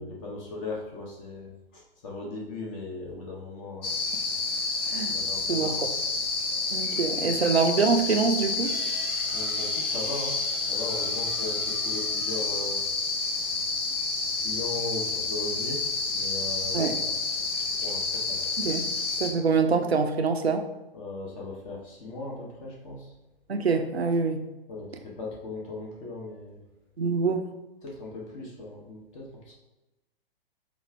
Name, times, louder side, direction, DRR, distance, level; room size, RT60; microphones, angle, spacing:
voice 1, 0.0-3.9 5.1-5.7 9.3-10.4 10.7-12.8 14.4-15.8 16.1-17.1 17.8-18.5 20.9-23.1 24.7-26.6 27.8-29.5, left 2 dB, 35° left, -3 dB, 0.9 m, -38 dB
sound 1, 3.8-19.3, left 3 dB, 65° left, 0.9 m, -29 dB
voice 2, 5.5-5.9 6.7-8.7 16.7-17.0 18.6-18.9 19.2-20.6 23.5-24.4 27.0-27.4, right 4 dB, 90° right, 6 dB, 0.6 m, -25 dB
sound 2, 8.4-13.8, right 2 dB, 5° right, 0.6 m, -46 dB
5.1 x 2.5 x 3.3 m, 1.0 s
figure-of-eight pair, 120°, 31 cm